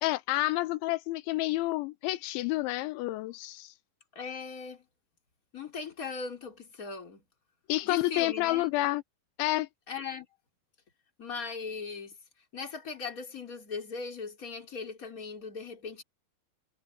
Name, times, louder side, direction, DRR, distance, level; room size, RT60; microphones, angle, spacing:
voice 1, 0.0-3.7 7.7-9.0 9.4-9.7, left 18 dB, 85° left, 3.0 m, -29 dB
voice 2, 4.1-4.9 5.5-7.2 7.8-8.7 9.9-10.3 11.2-12.2 12.5-16.0, left 5 dB, 20° left, 3.6 m, -39 dB
omnidirectional pair, 5.4 m